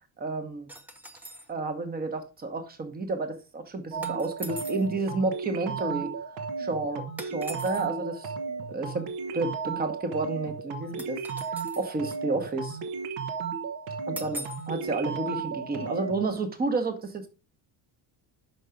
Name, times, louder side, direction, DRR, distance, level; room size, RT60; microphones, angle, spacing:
voice 1, 0.2-0.7 1.5-6.1 6.6-8.3 8.7-9.0 9.3-11.2 11.8-12.8 14.1-17.3, right 3 dB, 20° right, 1.0 m, -31 dB
sound 1, 0.7-1.5 4.0-4.9 7.2-7.9 11.0-11.9 14.2-14.7, equal, 5° right, 0.5 m, -41 dB
sound 2, 3.9-16.3, right 5 dB, 75° right, 1.2 m, -34 dB
5.8 x 5.3 x 5.0 m
cardioid pair, 165°, 46 cm